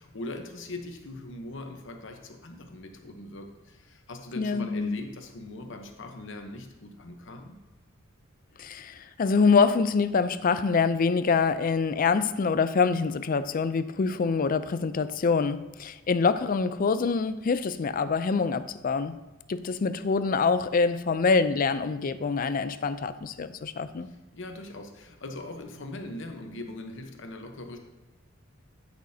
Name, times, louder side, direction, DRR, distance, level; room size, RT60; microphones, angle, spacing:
voice 1, 0.0-7.6 24.1-27.8, left 1 dB, 65° left, 4 dB, 1.0 m, -41 dB
voice 2, 4.4-5.0 8.6-19.1 19.5-24.1, left 5 dB, 45° left, 13 dB, 0.4 m, -25 dB
13.5 x 6.2 x 2.8 m, 1.1 s
head